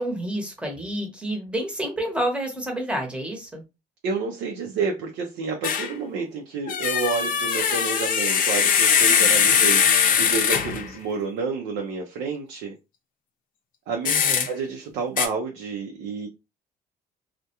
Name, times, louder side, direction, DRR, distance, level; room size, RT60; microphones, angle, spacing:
voice 1, 0.0-3.6 14.0-14.5, right 1 dB, 5° right, 0.9 m, -29 dB
voice 2, 4.0-12.8 13.9-14.1 14.5-16.3, right 5 dB, 85° right, 0.5 m, -29 dB
sound 1, 5.6-5.9 6.7-10.9 14.0-14.5 15.2-15.3, left 7 dB, 55° left, 0.5 m, -21 dB
2.2 x 2.1 x 2.8 m
cardioid pair, 110°, 17 cm